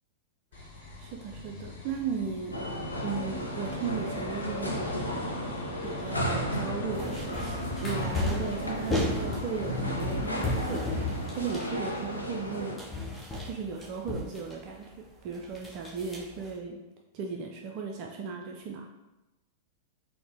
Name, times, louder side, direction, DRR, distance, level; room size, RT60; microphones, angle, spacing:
sound 1, 0.5-10.0, left 4 dB, 65° left, 1.0 m, -44 dB
voice 1, 1.0-2.6 3.0-5.2 5.8-12.9 13.4-16.8 17.1-18.9, right 5 dB, 40° right, 1 dB, 0.3 m, -36 dB
sound 2, 2.5-12.8, equal, 85° left, 0.5 m, -34 dB
sound 3, 6.9-12.5 12.8-14.9 15.3-16.6, left 1 dB, 15° left, 0.8 m, -34 dB
4.1 x 2.0 x 2.8 m, 1.0 s
figure-of-eight pair, 95°, 0 cm